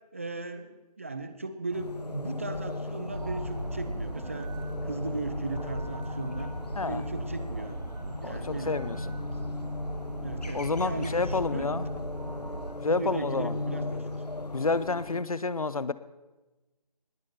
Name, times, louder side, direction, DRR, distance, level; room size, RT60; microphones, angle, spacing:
voice 1, 0.1-4.5 4.8-6.5 6.9-7.8 8.2-9.2 10.2-11.9 12.9-14.2, right 2 dB, 20° right, 10 dB, 0.5 m, -37 dB
sound 1, 1.7-15.2, left 2 dB, 80° left, 1.3 m, -37 dB
sound 2, 3.1-12.7, right 1 dB, 60° right, 3.2 m, -37 dB
voice 2, 8.2-9.2 10.5-11.9 12.8-13.6 14.5-15.9, left 3 dB, 60° left, 16 dB, 0.8 m, -29 dB
20.0 x 9.8 x 5.7 m, 1.1 s
figure-of-eight pair, 155°, 21 cm